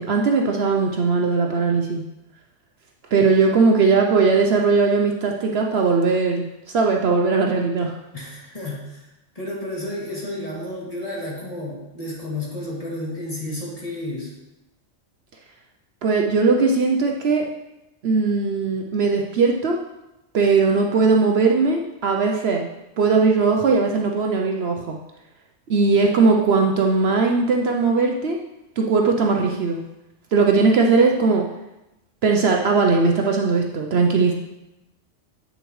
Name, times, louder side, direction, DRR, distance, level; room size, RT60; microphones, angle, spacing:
voice 1, 0.0-2.0 3.1-7.9 16.0-17.5 18.0-19.8 20.3-22.7 23.0-25.0 25.7-28.4 28.8-29.8 30.3-31.5 32.2-34.3, right 4 dB, 60° right, 2 dB, 0.8 m, -19 dB
voice 2, 8.1-9.1 9.3-14.3, left 1 dB, 30° left, -6 dB, 2.3 m, -31 dB
8.8 x 6.5 x 3.1 m, 0.95 s
omnidirectional pair, 1.3 m